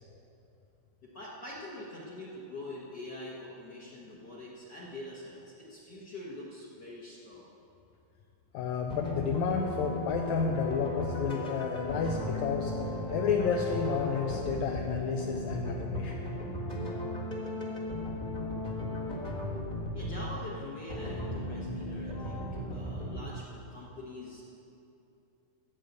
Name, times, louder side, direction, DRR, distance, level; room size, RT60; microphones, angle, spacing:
voice 1, 1.0-7.5 19.9-22.4 22.7-24.4, left 1 dB, 55° left, -5 dB, 1.2 m, -44 dB
voice 2, 8.5-12.7 13.1-16.2, left 5 dB, 75° left, 1 dB, 1.9 m, -31 dB
sound 1, 8.9-23.3, left 1 dB, 30° left, 0.7 m, -36 dB
14.0 x 4.9 x 8.0 m, 2.8 s
omnidirectional pair, 3.6 m